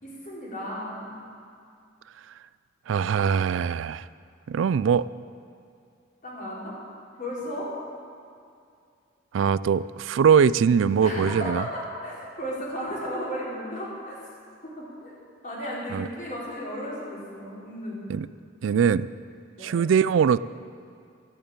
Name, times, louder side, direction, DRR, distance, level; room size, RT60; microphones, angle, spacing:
voice 1, 0.0-1.1 6.2-6.7 7.2-7.7 11.0-14.2 14.6-15.1 15.4-18.0 19.5-19.8, equal, 45° left, -6 dB, 4.4 m, -34 dB
voice 2, 2.9-4.1 4.5-5.1 9.3-11.6 15.9-16.1 18.1-18.3 18.6-19.1 19.6-20.4, right 7 dB, 75° right, 18 dB, 0.3 m, -22 dB
13.5 x 8.8 x 8.7 m, 2.3 s
head